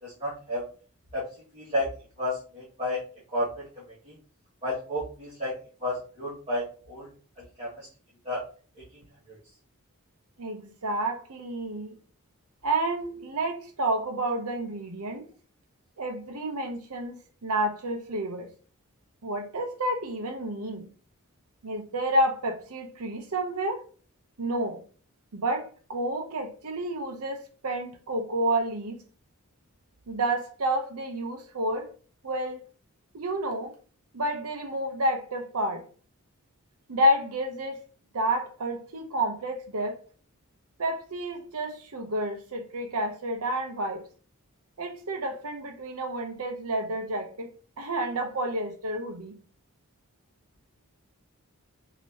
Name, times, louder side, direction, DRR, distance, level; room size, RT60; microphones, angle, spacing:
voice 1, 0.0-0.6 1.1-1.3 1.5-3.0 3.3-3.7 4.1-4.2 4.6-7.1 7.6-7.9 8.2-8.4 9.3-9.4, left 1 dB, 30° right, 1.9 m, -31 dB
voice 2, 10.4-11.9 12.6-15.2 16.0-18.5 19.2-20.9 21.6-23.8 24.4-24.8 25.3-29.0 30.1-31.9 32.2-32.6 33.1-33.7 34.1-35.8 36.9-37.8 38.1-40.0 40.8-44.0 44.8-47.5 47.8-49.3, right 1 dB, 85° right, 0.8 m, -30 dB
6.1 x 2.9 x 2.8 m
head